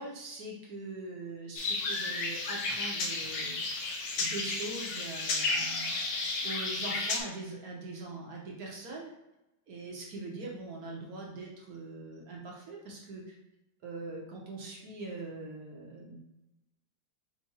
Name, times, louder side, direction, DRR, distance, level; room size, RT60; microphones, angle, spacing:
voice 1, 0.0-3.6 4.2-6.0 6.4-9.1 9.7-13.4 13.8-16.2, right 2 dB, 60° right, -1 dB, 1.1 m, -42 dB
sound 1, 1.6-7.2, left 3 dB, 65° left, 0.9 m, -32 dB
3.7 x 3.3 x 4.1 m, 0.92 s
omnidirectional pair, 2.2 m